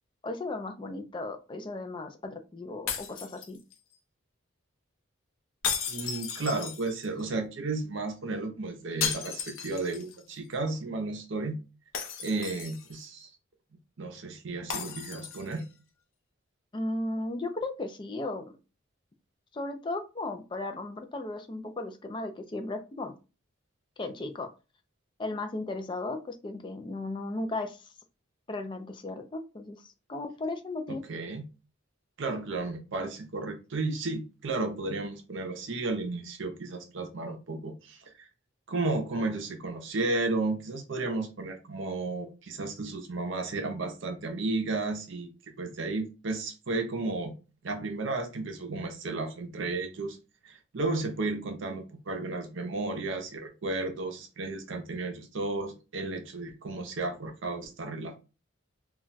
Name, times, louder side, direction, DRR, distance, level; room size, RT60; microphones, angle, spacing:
voice 1, 0.2-3.6 16.7-18.6 19.5-23.1 24.0-24.5 25.2-27.8 28.5-31.0, left 2 dB, 25° left, 0.3 m, -35 dB
sound 1, 2.9-3.9 5.6-7.2 9.0-10.2 10.5-10.6 11.9-13.0 14.7-15.6, left 7 dB, 75° left, 0.6 m, -35 dB
voice 2, 5.9-11.6 12.2-13.3 14.0-15.7 30.9-31.5 32.2-38.3 38.7-45.3 45.6-47.3 47.6-50.2 50.4-58.1, right 3 dB, 65° right, 0.5 m, -33 dB
2.3 x 2.1 x 3.8 m
head